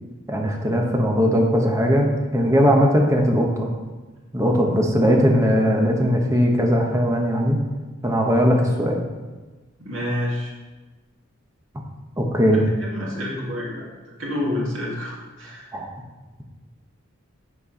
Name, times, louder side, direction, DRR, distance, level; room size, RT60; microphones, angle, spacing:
voice 1, 0.3-2.1 2.3-3.7 4.3-7.6 8.0-9.0 12.2-12.6 15.7-15.9, equal, 15° right, 1 dB, 1.1 m, -19 dB
voice 2, 9.8-10.5 12.8-13.9 14.2-15.7, left 1 dB, 80° right, -4 dB, 2.0 m, -28 dB
10.0 x 4.6 x 5.6 m, 1.2 s
head